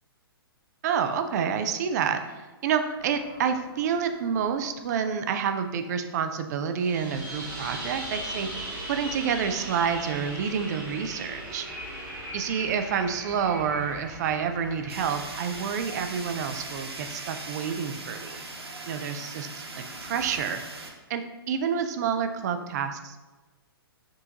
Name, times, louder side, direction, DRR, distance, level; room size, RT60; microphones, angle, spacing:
voice 1, 0.8-11.7 12.3-18.4 18.9-19.7 20.0-20.6 21.1-23.3, right 7 dB, 45° right, 8 dB, 0.4 m, -28 dB
sound 1, 2.9-5.2 6.7-18.4 19.9-20.4, right 1 dB, 20° right, 1.2 m, -40 dB
Fire, 14.9-20.9, right 2 dB, 85° right, 0.7 m, -39 dB
6.1 x 2.5 x 2.8 m, 1.2 s
figure-of-eight pair, 120°, 13 cm